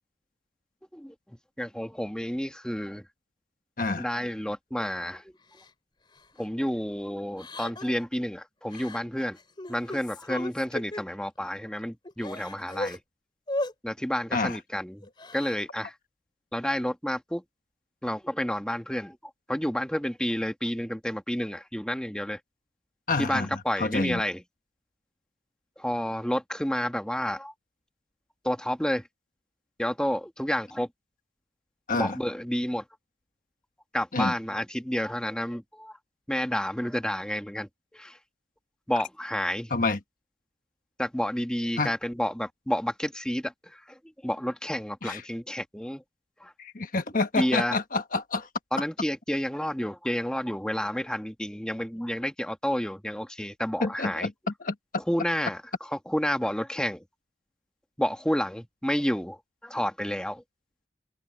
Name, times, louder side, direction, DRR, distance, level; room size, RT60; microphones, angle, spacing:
voice 1, 0.9-3.0 4.0-5.3 6.4-9.4 9.7-13.0 13.8-15.1 15.3-15.9 16.5-17.4 18.0-19.2 19.5-22.4 23.2-24.4 25.8-27.5 28.4-29.0 29.8-30.9 31.9-32.8 33.9-35.9 36.3-38.2 38.9-39.7 41.0-44.0 44.2-46.0 46.4-46.5 47.4-47.7 48.7-54.3 55.1-55.6 56.1-57.0 58.0-60.4, equal, 5° left, 1.6 m, -30 dB
Crying sobbing, 5.6-5.7 6.2-6.4 7.4-8.0 8.7-9.0 9.4-11.0 11.6-11.7 12.0-13.0 13.5-13.7 15.0-15.6, left 1 dB, 25° left, 3.5 m, -36 dB
voice 2, 23.1-24.2 31.9-32.2 34.1-34.3 39.7-40.0 41.8-41.9 45.0-45.2 46.6-48.5 53.8-54.7, left 3 dB, 50° left, 1.3 m, -28 dB
open air
head